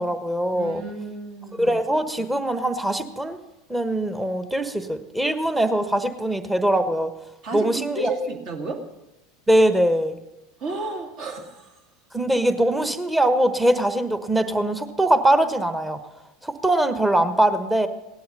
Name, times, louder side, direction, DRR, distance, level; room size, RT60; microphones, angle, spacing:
voice 1, 0.0-0.8 1.6-3.4 3.7-7.1 7.5-8.1 9.5-10.2 12.1-16.0 16.4-17.9, right 1 dB, 5° right, 10 dB, 1.2 m, -22 dB
voice 2, 0.5-1.7 7.4-8.9 10.6-11.8, right 3 dB, 45° right, 4 dB, 2.1 m, -32 dB
17.5 x 11.5 x 5.4 m, 0.96 s
figure-of-eight pair, 80°, 0 cm